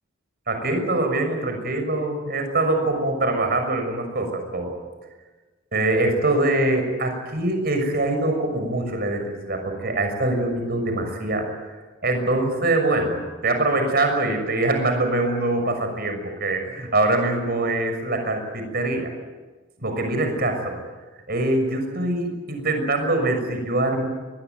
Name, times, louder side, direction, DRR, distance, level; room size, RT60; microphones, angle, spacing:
voice 1, 0.5-4.7 5.7-11.5 12.0-19.1 19.8-20.7 21.3-24.1, right 2 dB, 50° right, 5 dB, 6.4 m, -23 dB
23.0 x 21.5 x 9.4 m, 1.3 s
head